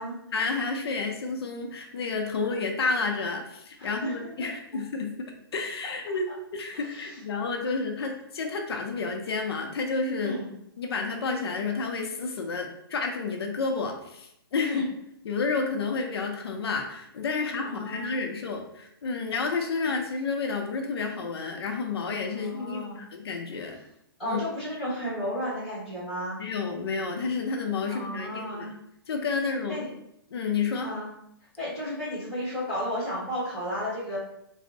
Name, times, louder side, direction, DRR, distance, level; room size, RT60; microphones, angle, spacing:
voice 1, 0.3-10.4 10.8-14.9 15.2-23.8 24.2-24.4 26.4-28.8 29.1-29.8 30.3-30.9, left 4 dB, 85° left, 3 dB, 0.4 m, -30 dB
voice 2, 3.8-4.1 4.4-4.5 6.7-7.1 10.2-10.5 14.6-14.8 17.6-18.2 19.8-19.9 22.3-23.0 24.2-26.4 27.9-28.7 29.7-29.9 30.8-31.1 31.6-34.2, equal, 5° left, -12 dB, 1.1 m, -33 dB
2.5 x 2.0 x 2.6 m, 0.77 s
hypercardioid pair, 175°, 13 cm